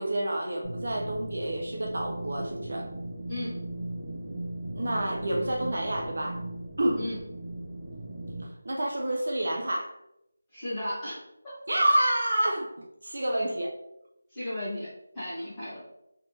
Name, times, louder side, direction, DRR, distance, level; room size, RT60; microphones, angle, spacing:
voice 1, 0.0-2.9 4.8-6.4 6.8-7.1 8.4-9.9 11.7-12.7 13.0-13.7, right 1 dB, 55° right, 0 dB, 0.6 m, -28 dB
sound 1, 0.6-8.4, right 1 dB, 25° right, 1.4 m, -38 dB
voice 2, 10.5-11.6 13.3-13.4 14.3-14.9 15.1-15.8, left 1 dB, 5° left, -16 dB, 1.2 m, -35 dB
3.3 x 3.3 x 2.7 m, 0.83 s
figure-of-eight pair, 180°, 0 cm